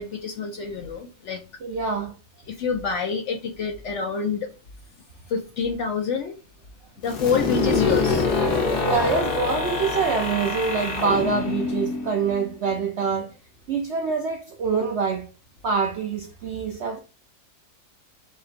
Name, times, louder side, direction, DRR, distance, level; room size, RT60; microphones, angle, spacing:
voice 1, 0.0-1.4 2.5-4.5 5.3-6.3 7.0-8.3, left 5 dB, 65° left, 0.7 m, -27 dB
voice 2, 1.6-2.1 8.8-13.3 13.7-15.3 15.6-17.0, right 5 dB, 70° right, 0.6 m, -25 dB
sound 1, 7.1-12.8, left 4 dB, 85° left, 1.5 m, -25 dB
3.9 x 3.8 x 2.5 m
omnidirectional pair, 1.7 m